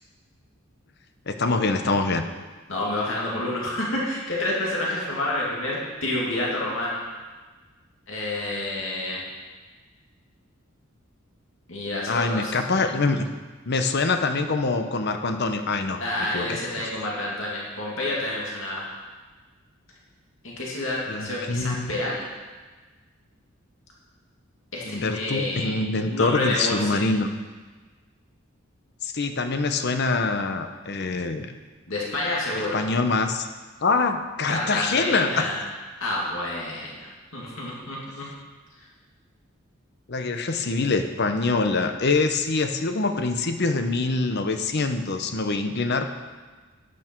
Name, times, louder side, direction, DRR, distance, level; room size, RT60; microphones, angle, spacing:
voice 1, 1.3-2.2 12.1-13.3 13.7-16.9 21.1-21.9 24.8-27.3 29.0-31.5 32.7-33.5 33.8-35.5 40.1-46.1, left 3 dB, 50° left, 7 dB, 0.8 m, -25 dB
voice 2, 2.7-7.0 8.1-9.2 11.7-13.1 16.0-18.9 20.4-22.3 24.7-25.7 26.1-27.0 31.9-32.8 34.5-35.6 36.0-38.3, left 1 dB, 65° left, -4 dB, 2.4 m, -29 dB
12.0 x 8.9 x 4.6 m, 1.3 s
head